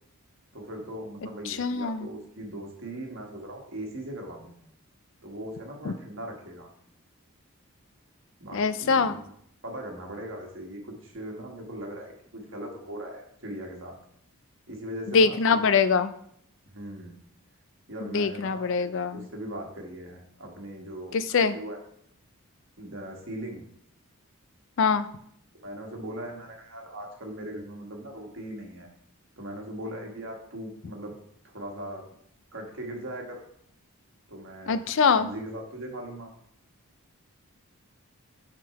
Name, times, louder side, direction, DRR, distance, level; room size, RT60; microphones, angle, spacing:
voice 1, 0.5-4.5 5.2-6.7 8.4-9.2 9.6-14.0 14.7-15.7 16.7-17.2 17.9-21.8 22.8-23.6 25.6-28.9 29.4-31.1 31.4-32.0 32.5-33.4 34.3-34.8 35.2-36.3, right 1 dB, 60° right, 1 dB, 1.5 m, -39 dB
voice 2, 1.5-2.1 5.9-6.0 8.5-9.2 15.1-16.1 18.1-19.2 21.1-21.6 24.8-25.1 34.7-35.3, left 5 dB, 60° left, 12 dB, 0.4 m, -23 dB
6.2 x 3.7 x 5.8 m, 0.70 s
head